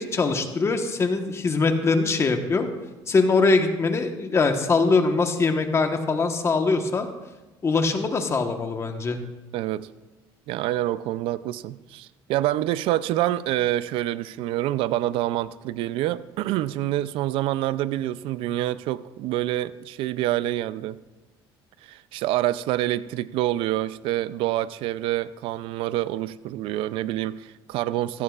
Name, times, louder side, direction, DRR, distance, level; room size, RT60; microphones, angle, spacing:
voice 1, 0.0-2.7 3.1-7.1 7.6-9.2, left 4 dB, 30° left, 6 dB, 1.1 m, -22 dB
voice 2, 9.5-9.9 10.5-21.0 21.8-28.2, right 14 dB, 75° right, 16 dB, 0.4 m, -27 dB
15.5 x 14.0 x 2.4 m, 1.1 s
cardioid pair, 110°, 9 cm